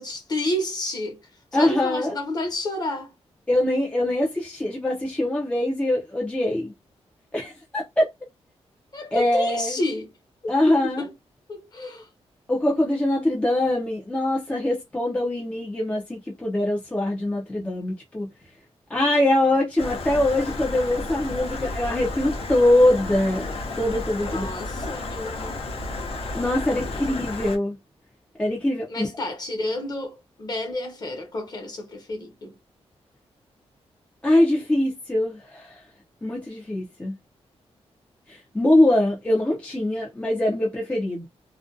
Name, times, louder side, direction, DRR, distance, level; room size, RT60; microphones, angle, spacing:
voice 1, 0.0-3.1 8.9-10.1 10.4-11.1 11.5-12.1 24.2-25.6 28.9-32.5, left 1 dB, 35° left, 0.9 m, -30 dB
voice 2, 1.5-2.2 3.5-6.7 7.3-8.1 9.1-9.8 10.5-11.0 12.5-18.3 18.9-24.4 26.3-27.8 28.4-29.1 34.2-35.8 36.2-37.1 38.3-41.3, left 1 dB, 10° left, 0.5 m, -23 dB
Stream, 19.8-27.6, left 2 dB, 60° left, 0.7 m, -32 dB
2.4 x 2.2 x 2.5 m
wide cardioid pair, 165°, 11 cm